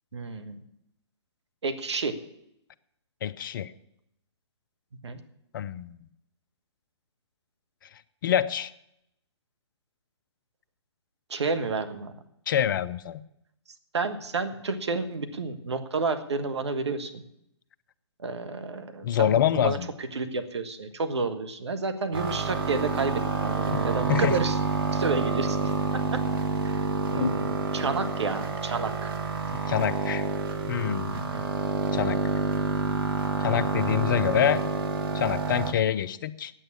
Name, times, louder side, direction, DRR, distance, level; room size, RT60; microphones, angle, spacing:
voice 1, 0.1-0.6 1.6-2.1 5.0-5.2 11.3-12.1 13.9-17.2 18.2-19.8 20.1-24.5 24.9-26.2 26.6-29.1 31.1-31.5, right 4 dB, 70° right, 7 dB, 1.3 m, -30 dB
voice 2, 3.2-3.7 5.5-6.0 8.2-8.7 12.5-13.2 19.0-19.9 23.7-23.8 24.1-24.4 27.2-27.3 29.5-30.2 30.7-31.3 31.9-32.2 33.4-34.6 35.1-36.5, left 10 dB, 45° left, 14 dB, 0.6 m, -26 dB
sound 1, 22.1-35.7, right 5 dB, 50° right, 1.6 m, -28 dB
9.0 x 8.9 x 8.6 m, 0.80 s
figure-of-eight pair, 130°, 15 cm